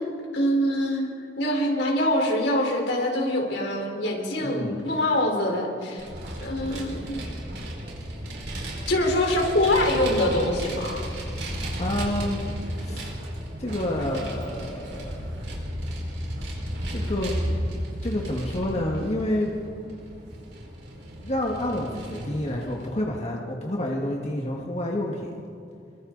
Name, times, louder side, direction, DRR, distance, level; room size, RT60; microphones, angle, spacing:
voice 1, 0.3-1.1 1.4-6.1 6.4-7.2 8.9-11.0, left 1 dB, 75° left, 0 dB, 4.2 m, -24 dB
voice 2, 4.4-4.8 11.8-12.4 12.8-13.1 13.6-15.3 16.9-17.4 18.0-19.5 21.2-25.3, left 1 dB, 40° left, -1 dB, 1.8 m, -29 dB
Vehicle, 6.0-22.9, equal, 70° right, 4.8 m, -33 dB
29.0 x 23.5 x 4.0 m, 2.5 s
head